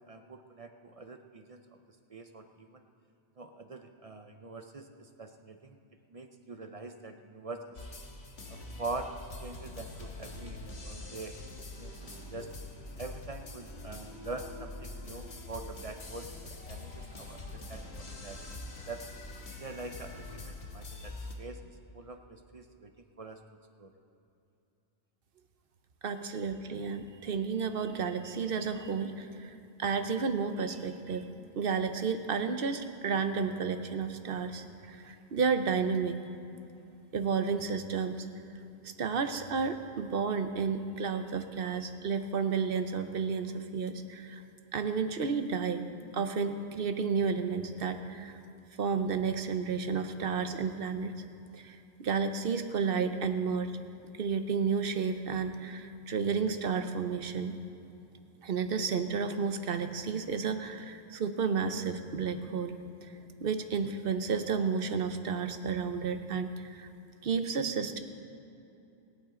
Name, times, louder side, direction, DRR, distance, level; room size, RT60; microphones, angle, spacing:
voice 1, 0.1-1.8 2.1-2.8 3.4-5.8 6.1-7.6 8.5-9.1 9.4-11.3 11.8-12.5 13.0-16.3 16.7-17.9 18.2-18.5 18.9-19.0 19.6-21.6 21.9-22.9 23.2-23.4 23.8-23.9, right 3 dB, 40° right, 6 dB, 0.6 m, -44 dB
sound 1, 7.7-21.3, left 2 dB, 75° left, 1.7 m, -44 dB
voice 2, 26.0-31.3 31.6-36.2 37.1-38.3 38.8-44.4 44.7-45.9 46.1-48.4 48.8-51.1 51.5-53.7 54.2-57.6 58.4-62.8 63.0-63.1 63.4-66.9 67.2-68.0, right 5 dB, 60° right, 8 dB, 0.9 m, -32 dB
25.5 x 9.0 x 3.8 m, 2.8 s
omnidirectional pair, 1.1 m